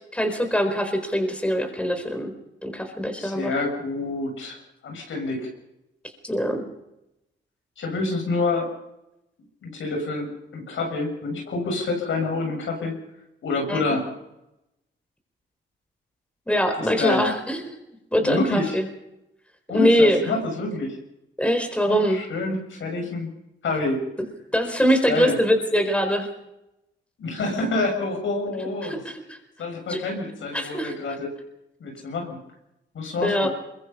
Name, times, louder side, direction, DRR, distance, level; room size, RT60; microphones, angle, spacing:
voice 1, 0.1-2.3 2.6-3.5 6.2-6.6 13.7-13.8 16.5-17.8 18.1-18.9 19.7-20.3 21.4-22.2 24.5-26.3 28.8-29.4 29.9-30.0 30.5-31.0 33.2-33.5, equal, 5° left, 5 dB, 4.5 m, -23 dB
voice 2, 3.2-4.6 4.8-5.5 7.8-8.7 9.6-13.0 13.4-14.1 16.8-17.2 18.2-18.8 19.7-21.0 21.9-23.3 23.6-24.0 25.0-25.4 27.2-29.0 29.6-31.4 31.8-32.4 32.9-33.5, left 3 dB, 75° left, 2 dB, 6.8 m, -27 dB
23.0 x 22.5 x 5.5 m, 0.89 s
cardioid pair, 75°, 20 cm